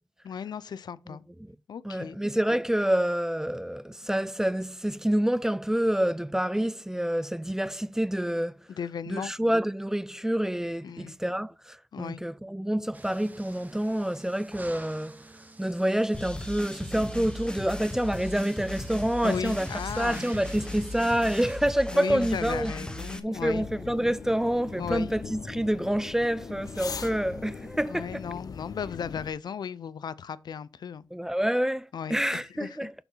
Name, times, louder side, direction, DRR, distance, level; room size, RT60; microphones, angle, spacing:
voice 1, 0.2-1.2 1.7-2.2 8.8-9.3 10.8-11.2 11.9-12.2 19.2-20.3 21.9-23.7 24.8-25.1 27.9-31.1 31.9-32.2 32.5-32.9, left 7 dB, 75° left, 0.5 m, -35 dB
voice 2, 1.8-8.5 9.1-15.2 15.6-19.7 20.0-22.7 23.2-28.3 31.1-32.9, right 1 dB, 5° right, 0.3 m, -27 dB
sound 1, 12.9-21.6, right 2 dB, 25° right, 1.0 m, -49 dB
sound 2, 16.1-23.2, left 1 dB, 10° left, 1.1 m, -37 dB
sound 3, 23.3-29.3, left 5 dB, 60° left, 0.8 m, -40 dB
6.9 x 6.0 x 5.6 m
wide cardioid pair, 100°, 7 cm